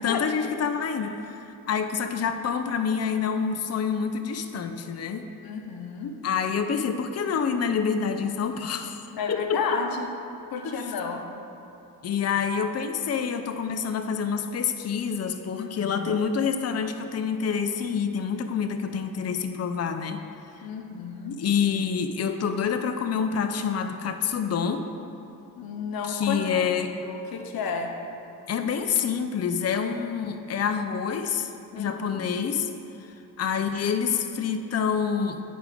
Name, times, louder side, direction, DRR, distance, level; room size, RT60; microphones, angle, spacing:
voice 1, 0.0-5.3 6.2-9.8 10.6-10.9 12.0-20.2 21.4-24.9 26.1-26.9 28.5-32.7 33.0-35.4, left 6 dB, 45° left, 7 dB, 0.6 m, -27 dB
voice 2, 5.4-6.1 9.1-10.1 10.5-11.2 15.6-16.0 20.6-21.4 25.6-26.7 27.0-27.9 31.7-32.2, left 5 dB, 90° left, 4 dB, 0.8 m, -32 dB
9.9 x 5.0 x 5.0 m, 2.9 s
cardioid pair, 65°, 35 cm